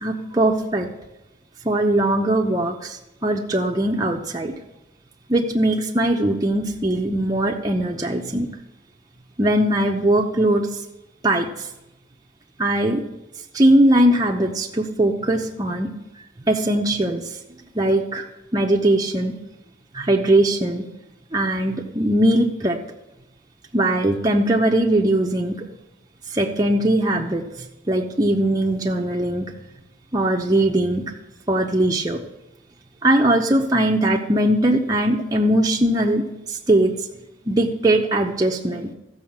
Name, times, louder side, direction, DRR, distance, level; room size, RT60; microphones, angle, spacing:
voice 1, 0.0-0.9 1.6-4.5 5.3-8.5 9.4-10.7 11.2-11.7 12.6-13.0 13.5-15.9 16.5-17.2 17.7-18.2 18.5-19.4 19.9-20.9 21.3-22.8 23.7-25.7 26.3-27.4 27.9-29.5 30.1-31.0 31.5-32.2 33.0-37.1 37.5-38.9, right 1 dB, 20° right, -1 dB, 0.7 m, -20 dB
14.0 x 5.5 x 7.2 m, 0.95 s
head